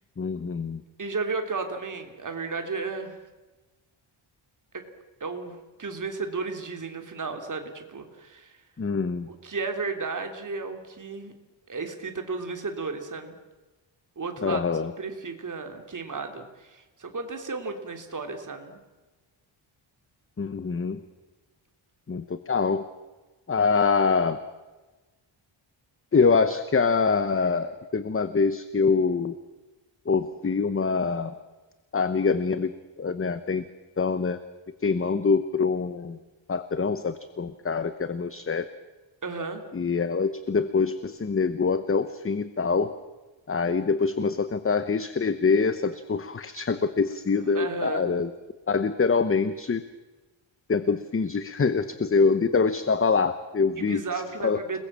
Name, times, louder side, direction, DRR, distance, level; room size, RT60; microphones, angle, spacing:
voice 1, 0.2-0.8 8.8-9.3 14.4-14.9 20.4-21.0 22.1-22.8 23.5-24.4 26.1-29.3 30.1-31.3 31.9-32.7 33.0-33.6 34.0-34.4 34.8-36.2 36.5-38.7 39.7-42.9 43.5-48.3 48.7-49.8 50.7-54.0 54.4-54.8, left 5 dB, 25° left, 12 dB, 1.0 m, -25 dB
voice 2, 1.0-3.2 4.7-4.8 5.2-8.6 9.3-11.3 11.7-13.3 14.2-14.6 15.0-18.8 39.2-39.6 47.5-48.2 53.8-54.8, right 4 dB, 40° right, 5 dB, 3.3 m, -33 dB
29.0 x 21.0 x 7.5 m, 1.2 s
wide cardioid pair, 165°, 48 cm